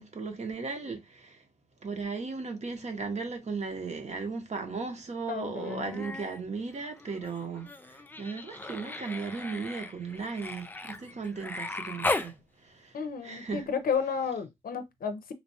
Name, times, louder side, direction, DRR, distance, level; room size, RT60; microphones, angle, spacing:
voice 1, 0.0-1.4 1.8-13.0 13.2-13.7, right 4 dB, 50° right, 0.9 m, -36 dB
voice 2, 5.3-6.0 12.9-15.3, left 6 dB, 75° left, 0.5 m, -32 dB
Human voice, 5.6-6.4 6.7-12.3 13.9-14.0, left 2 dB, 15° left, 0.3 m, -37 dB
3.2 x 2.3 x 2.6 m
wide cardioid pair, 90°, 15 cm